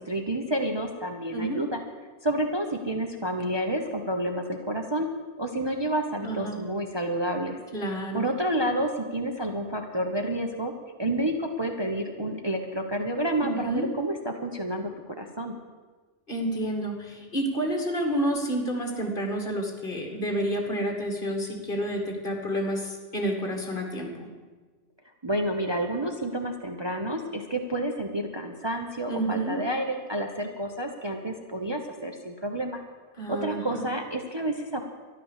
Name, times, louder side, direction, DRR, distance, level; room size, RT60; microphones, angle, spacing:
voice 1, 0.0-1.8 2.2-5.1 5.4-7.6 8.1-10.7 11.0-15.5 25.2-32.8 33.3-34.8, right 1 dB, 25° right, 3 dB, 1.0 m, -29 dB
voice 2, 1.3-1.6 6.2-6.6 7.7-8.3 13.4-13.9 16.3-24.3 29.1-29.6 33.2-33.9, right 1 dB, 45° left, 2 dB, 2.4 m, -29 dB
13.0 x 11.5 x 7.4 m, 1.4 s
omnidirectional pair, 1.3 m